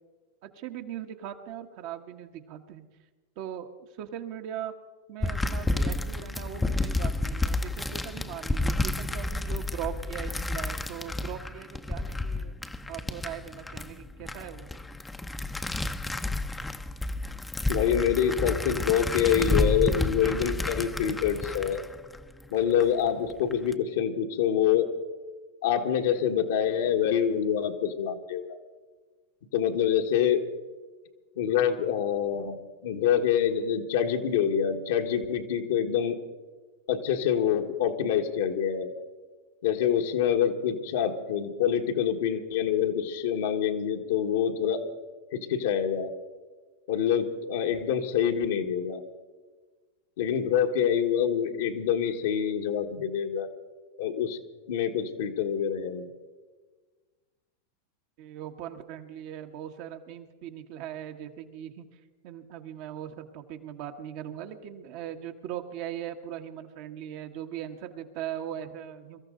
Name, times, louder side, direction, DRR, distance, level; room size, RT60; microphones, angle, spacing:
voice 1, 0.4-2.8 3.4-3.7 4.0-4.7 5.1-12.6 12.9-14.7 58.2-61.9 62.2-69.2, right 10 dB, 55° right, 5 dB, 1.4 m, -39 dB
sound 1, 5.2-22.8 23.3-23.7, left 2 dB, 10° left, 0.7 m, -31 dB
voice 2, 17.7-21.8 22.5-24.9 25.6-28.6 29.5-30.4 31.4-36.2 36.9-38.9 39.6-44.8 45.3-46.1 46.9-49.0 50.2-53.5 54.0-54.4 54.7-56.1, left 8 dB, 70° left, 4 dB, 1.5 m, -26 dB
23.5 x 14.0 x 3.9 m, 1.3 s
hypercardioid pair, 100°, 0 cm